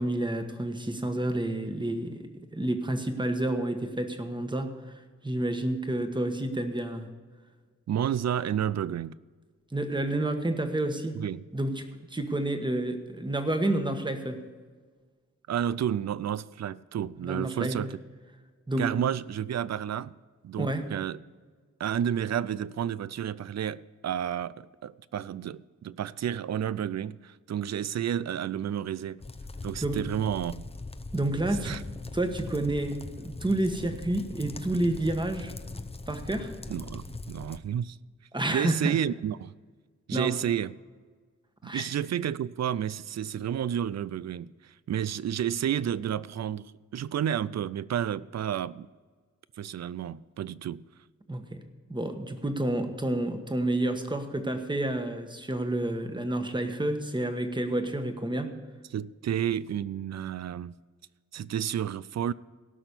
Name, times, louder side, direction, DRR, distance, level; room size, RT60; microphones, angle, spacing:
voice 1, 0.0-4.7 5.2-7.1 9.7-11.2 11.5-11.8 12.1-14.4 17.2-17.9 18.7-18.9 20.6-20.9 29.8-30.0 31.1-31.8 32.1-35.5 36.1-36.5 38.3-39.0 40.1-40.3 41.6-41.9 51.3-51.6 51.9-58.5, right 1 dB, 15° right, 1.3 m, -29 dB
voice 2, 7.9-9.2 11.1-11.4 15.5-18.0 18.8-20.1 20.4-21.2 21.8-29.2 29.6-30.7 31.6-31.8 36.7-38.0 38.5-39.5 40.1-40.8 41.6-48.9 49.6-50.8 58.9-60.7 61.3-62.3, right 9 dB, 65° right, 0.4 m, -31 dB
sound 1, 29.2-37.6, left 3 dB, 20° left, 0.7 m, -41 dB
17.5 x 6.0 x 6.9 m
wide cardioid pair, 105°, 29 cm